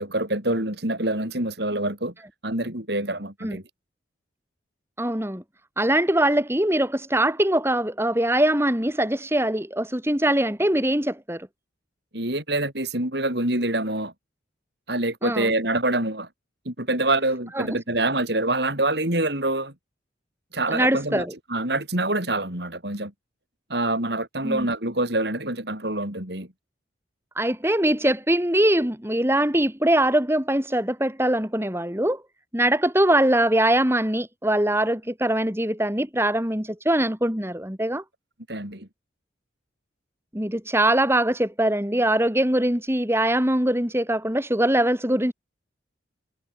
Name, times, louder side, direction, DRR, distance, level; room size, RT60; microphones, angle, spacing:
voice 1, 0.0-2.1 2.4-3.6 12.1-14.1 14.9-16.3 16.6-19.7 20.5-23.1 23.7-26.5 38.5-38.9, right 2 dB, 60° right, 6.2 m, -26 dB
voice 2, 5.0-5.4 5.8-11.5 15.2-15.5 17.5-17.7 20.7-21.3 24.4-24.7 27.4-32.2 32.5-38.0 40.3-45.3, right 1 dB, 15° right, 3.0 m, -22 dB
head